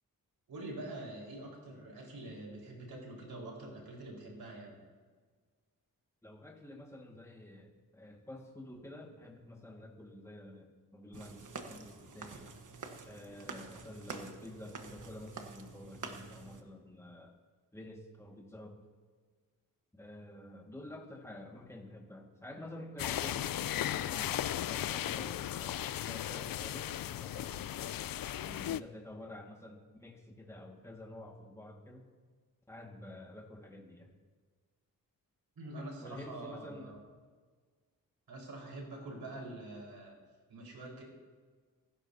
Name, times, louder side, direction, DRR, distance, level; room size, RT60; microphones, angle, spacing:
voice 1, 0.5-4.7 35.6-37.0 38.3-40.1 40.5-41.0, right 2 dB, 90° right, -2 dB, 4.8 m, -45 dB
voice 2, 6.2-12.6 13.0-17.4 17.7-18.9 19.9-27.8 28.4-32.1 32.7-34.1 36.0-37.0, left 1 dB, 10° left, 0 dB, 1.8 m, -49 dB
sound 1, 11.1-16.6, right 4 dB, 60° right, 1.4 m, -47 dB
sound 2, 23.0-28.8, left 12 dB, 75° left, 0.5 m, -36 dB
25.0 x 12.5 x 2.8 m, 1.5 s
cardioid pair, 70°, 35 cm